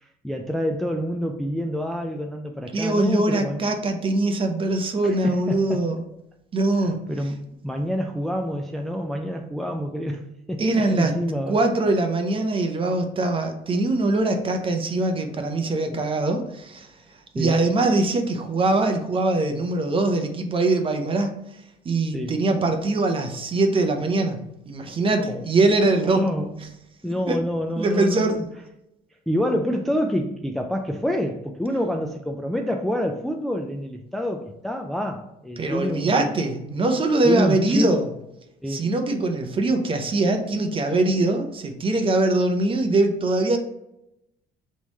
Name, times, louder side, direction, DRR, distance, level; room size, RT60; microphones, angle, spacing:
voice 1, 0.0-3.6 5.0-5.8 7.1-11.6 17.4-17.6 22.1-22.4 25.2-25.4 26.0-26.5 27.0-28.4 29.3-36.2 37.2-37.9 38.6-38.9, equal, ahead, 3 dB, 0.3 m, -27 dB
voice 2, 2.7-6.0 6.5-7.0 10.6-11.1 11.5-16.9 17.3-21.3 21.8-24.4 24.7-26.2 27.3-27.4 27.8-28.4 35.6-38.1 38.7-43.6, right 2 dB, 30° right, 5 dB, 0.7 m, -22 dB
3.6 x 3.1 x 4.0 m, 0.84 s
cardioid pair, 110°, 17 cm